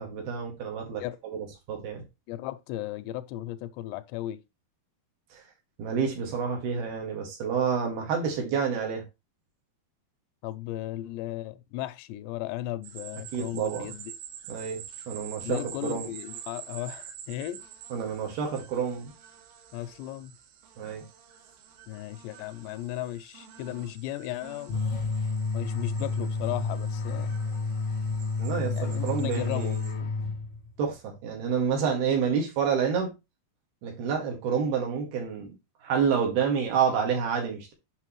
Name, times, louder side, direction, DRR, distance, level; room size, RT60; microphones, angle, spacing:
voice 1, 0.0-2.0 5.3-5.4 5.8-9.0 13.3-13.9 14.5-16.1 17.9-19.1 20.8-21.0 28.4-30.0 30.8-33.1 33.8-35.5 35.8-37.7, right 6 dB, 65° right, 3.7 m, -29 dB
voice 2, 2.3-4.4 10.4-14.1 15.4-17.6 19.7-20.3 21.9-24.8 25.5-27.3 28.7-29.8, left 14 dB, 90° left, 2.8 m, -35 dB
sound 1, 12.8-29.9, right 9 dB, 85° right, 3.4 m, -47 dB
sound 2, 24.7-30.8, left 3 dB, 60° left, 1.5 m, -30 dB
8.2 x 6.1 x 3.1 m
omnidirectional pair, 4.9 m